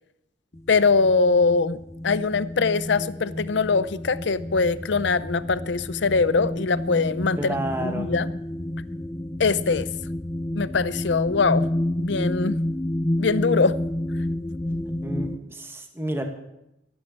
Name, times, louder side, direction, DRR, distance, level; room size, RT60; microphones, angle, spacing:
sound 1, 0.5-15.4, left 1 dB, 15° left, 0.5 m, -30 dB
voice 1, 0.7-1.8 2.0-7.5 7.8-8.3 9.4-9.9 10.5-11.7 12.0-12.6 13.2-13.8, left 4 dB, 65° left, 16 dB, 0.6 m, -22 dB
voice 2, 7.4-8.1 15.0-16.2, right 1 dB, 15° right, 4 dB, 1.9 m, -30 dB
13.5 x 12.5 x 7.4 m, 0.87 s
head